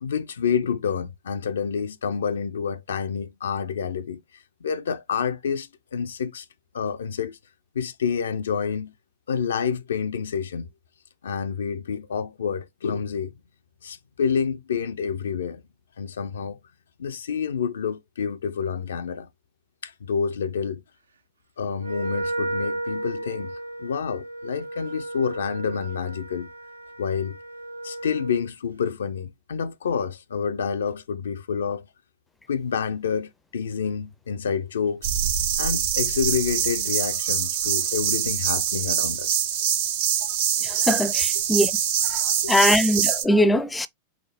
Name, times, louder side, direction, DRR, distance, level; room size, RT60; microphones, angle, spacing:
voice 1, 0.0-4.2 4.6-6.5 6.7-7.4 7.7-8.9 9.3-10.7 11.2-13.3 13.8-15.6 16.0-16.6 17.0-19.3 19.8-20.8 21.6-26.5 27.0-27.4 27.8-31.9 32.5-35.1 35.6-39.4 41.4-41.5 42.4-42.5, left 6 dB, 65° left, 0.4 m, -28 dB
Wind instrument woodwind instrument, 21.8-28.5, right 1 dB, 75° right, 0.5 m, -34 dB
Cicada-Indian Insect Sound, 35.0-43.2, right 9 dB, 55° right, 0.8 m, -24 dB
voice 2, 40.6-41.7 42.1-42.2 42.5-43.9, left 1 dB, 10° left, 0.4 m, -21 dB
4.8 x 2.0 x 3.4 m
figure-of-eight pair, 90°, 0 cm